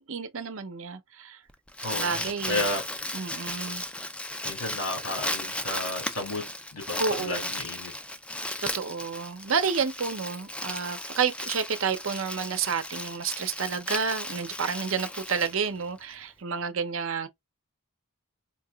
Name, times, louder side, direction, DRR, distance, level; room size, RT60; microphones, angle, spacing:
voice 1, 0.0-1.4 1.9-2.6 3.1-3.9 7.0-7.5 8.6-17.3, right 6 dB, 65° right, 0.6 m, -30 dB
Crumpling crinkling, 1.5-16.1, left 1 dB, 5° left, 0.3 m, -35 dB
voice 2, 1.8-2.8 4.4-7.9, left 2 dB, 85° left, 2.3 m, -33 dB
4.5 x 2.9 x 2.2 m
head